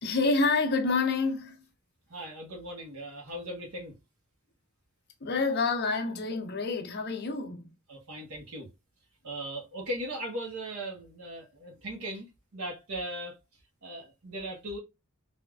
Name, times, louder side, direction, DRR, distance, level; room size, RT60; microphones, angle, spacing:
voice 1, 0.0-1.6 5.2-7.7, left 3 dB, 50° left, 0.7 m, -28 dB
voice 2, 2.1-4.0 7.9-8.7 9.2-13.4 13.8-14.8, right 1 dB, 70° right, 1.0 m, -38 dB
3.4 x 2.4 x 2.2 m
head